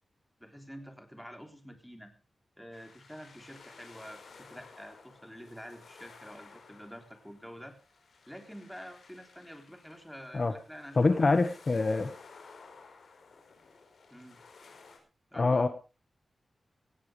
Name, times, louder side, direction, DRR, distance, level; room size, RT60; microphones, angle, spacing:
voice 1, 0.4-2.1 2.6-7.8 8.3-11.3 14.1-14.4 15.3-15.7, equal, ahead, 5 dB, 3.6 m, -48 dB
sound 1, 2.7-15.0, left 4 dB, 75° left, 4.8 m, -55 dB
voice 2, 10.9-12.1 15.3-15.7, left 3 dB, 40° left, 9 dB, 1.4 m, -25 dB
18.0 x 16.0 x 3.4 m, 0.31 s
wide cardioid pair, 115°, 0 cm